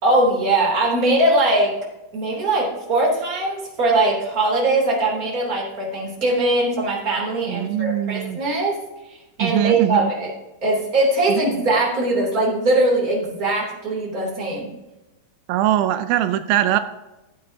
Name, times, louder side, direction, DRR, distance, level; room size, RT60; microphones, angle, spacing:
voice 1, 0.0-1.7 2.1-8.8 9.1-10.3 10.6-14.7, right 2 dB, 25° right, -3 dB, 3.2 m, -21 dB
voice 2, 7.5-8.4 9.4-10.1 15.5-16.8, right 12 dB, 85° right, 10 dB, 2.4 m, -21 dB
16.0 x 8.7 x 2.8 m, 1.0 s
omnidirectional pair, 4.1 m